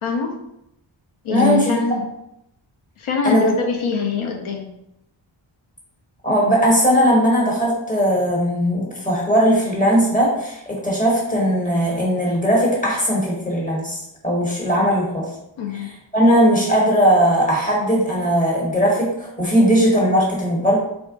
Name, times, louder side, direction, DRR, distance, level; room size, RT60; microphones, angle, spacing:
voice 1, 0.0-0.3 1.2-2.1 3.0-4.7 15.6-15.9, left 6 dB, 90° left, 3 dB, 0.6 m, -23 dB
voice 2, 1.3-1.7 3.2-3.5 6.2-14.0 14.2-15.3 15.7-20.8, equal, 15° left, -4 dB, 1.2 m, -18 dB
3.6 x 2.3 x 3.6 m, 0.80 s
wide cardioid pair, 115°, 47 cm